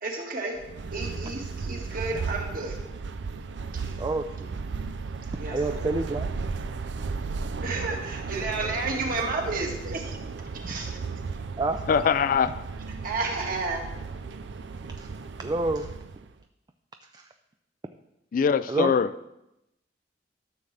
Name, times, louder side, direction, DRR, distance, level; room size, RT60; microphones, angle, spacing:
voice 1, 0.0-0.6 0.9-2.8 5.4-5.9 7.6-10.2 10.6-11.0 13.0-13.9, right 3 dB, 55° right, 0 dB, 1.7 m, -31 dB
sound 1, 0.6-16.3, right 4 dB, 80° right, 0.5 m, -35 dB
voice 2, 4.0-4.6 5.5-6.3 10.7-10.8 11.6-11.8 15.0-15.9 17.1-17.3 18.7-18.9, right 2 dB, 25° right, 6 dB, 0.4 m, -29 dB
voice 3, 11.9-12.6 18.3-19.1, left 6 dB, 50° left, 15 dB, 0.3 m, -22 dB
13.0 x 7.1 x 3.3 m, 0.89 s
head